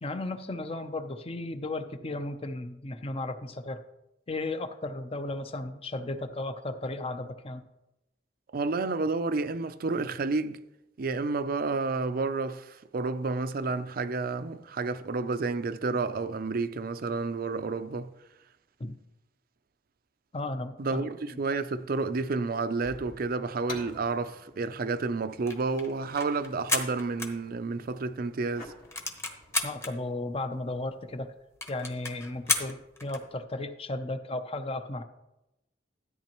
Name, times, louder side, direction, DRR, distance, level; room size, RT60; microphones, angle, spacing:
voice 1, 0.0-3.8 4.3-7.6 18.8-18.9 20.3-21.0 21.3-21.4 29.6-31.3 31.7-35.0, left 2 dB, 30° left, 0.6 m, -35 dB
voice 2, 8.5-10.6 11.0-18.1 20.8-28.7, right 3 dB, 55° right, 0.5 m, -30 dB
sound 1, 22.8-29.7, left 2 dB, 55° left, 1.8 m, -50 dB
sound 2, 25.3-28.0 28.3-28.4 28.7-29.9 30.5-30.6 30.8-30.9 31.2-31.3 31.6-33.3, left 2 dB, 15° left, 1.0 m, -33 dB
13.5 x 8.8 x 3.0 m
head